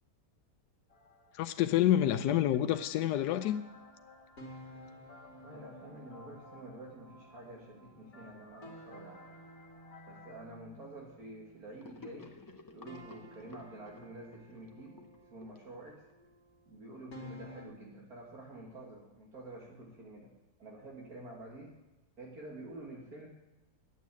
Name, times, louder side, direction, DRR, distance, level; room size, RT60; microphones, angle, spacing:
sound 1, 0.9-10.3, left 3 dB, 40° left, 1.7 m, -58 dB
voice 1, 1.3-3.6, left 12 dB, 90° left, 1.2 m, -28 dB
sound 2, 3.0-12.3 12.9-17.7, equal, 65° left, 2.2 m, -54 dB
voice 2, 5.3-9.3 10.1-12.3 12.7-16.0 16.7-20.3 20.6-21.8 22.2-23.3, right 2 dB, 65° right, 2.3 m, -49 dB
Gurgling / Sink (filling or washing), 11.8-16.3, left 3 dB, 20° left, 0.5 m, -53 dB
9.5 x 8.2 x 8.3 m
omnidirectional pair, 1.7 m